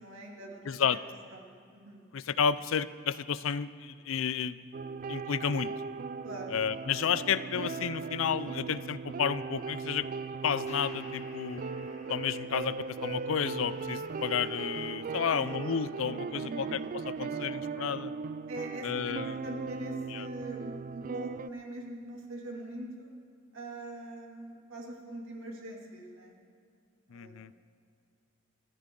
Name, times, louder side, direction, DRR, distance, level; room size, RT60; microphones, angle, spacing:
voice 1, 0.0-2.0 6.2-6.5 15.2-15.5 16.4-16.6 18.5-23.1 23.5-26.3 27.1-27.5, right 1 dB, 70° right, -1 dB, 2.5 m, -43 dB
voice 2, 0.6-1.0 2.1-4.6 5.1-5.7 6.5-10.1 10.4-11.6 12.1-16.8 17.1-18.1 18.8-19.3 20.1-20.3 27.1-27.5, left 7 dB, 70° left, 16 dB, 0.4 m, -31 dB
sound 1, 4.7-21.5, right 5 dB, 40° right, 0.3 m, -38 dB
sound 2, 10.7-22.6, left 2 dB, 35° left, 1.9 m, -58 dB
21.5 x 14.0 x 3.8 m, 2.4 s
head